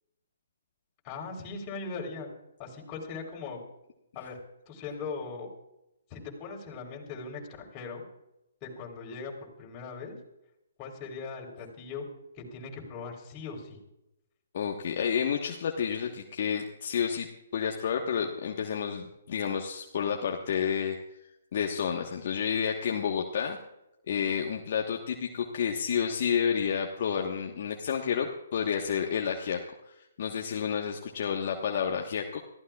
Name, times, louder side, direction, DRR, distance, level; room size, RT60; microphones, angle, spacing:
voice 1, 1.0-2.3 2.6-3.6 4.1-4.4 4.7-5.5 6.1-8.0 8.6-10.2 10.8-12.0 12.4-13.8, left 4 dB, 30° left, 0 dB, 3.9 m, -39 dB
voice 2, 14.5-17.3 17.5-21.0 21.5-23.6 24.1-29.6 29.9-32.4, left 7 dB, 55° left, 1 dB, 1.3 m, -30 dB
26.0 x 15.0 x 2.4 m, 0.90 s
hypercardioid pair, 140°, 0 cm